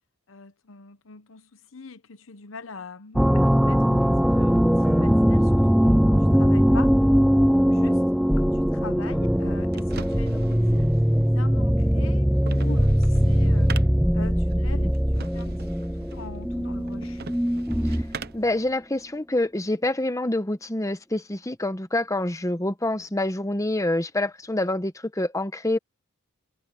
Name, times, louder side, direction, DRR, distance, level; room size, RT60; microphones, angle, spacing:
voice 1, 0.3-7.0 7.4-8.0 8.4-13.8 14.1-17.2, left 4 dB, 75° left, 1.0 m, -42 dB
sound 1, 3.2-18.2, equal, ahead, 0.3 m, -21 dB
sound 2, 9.3-18.5, right 5 dB, 50° right, 0.8 m, -43 dB
voice 2, 18.3-25.8, left 1 dB, 15° left, 1.0 m, -26 dB
head